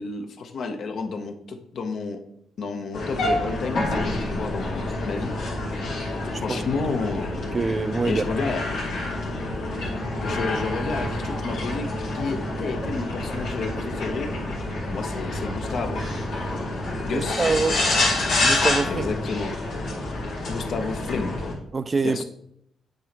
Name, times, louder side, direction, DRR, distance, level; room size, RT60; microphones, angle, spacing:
voice 1, 0.0-2.2 2.6-5.3 6.4-7.3 8.0-8.6 10.2-11.9 12.1-14.3 14.9-16.0 17.0-17.5 18.9-19.5 20.5-21.3 22.0-22.2, left 4 dB, 60° left, 0.9 m, -30 dB
sound 1, 2.9-21.5, left 2 dB, 85° left, 2.6 m, -28 dB
voice 2, 7.5-8.2 17.1-17.8 18.4-19.1 21.7-22.2, right 4 dB, 30° right, 0.4 m, -25 dB
9.3 x 3.9 x 3.3 m
cardioid pair, 90°, 0 cm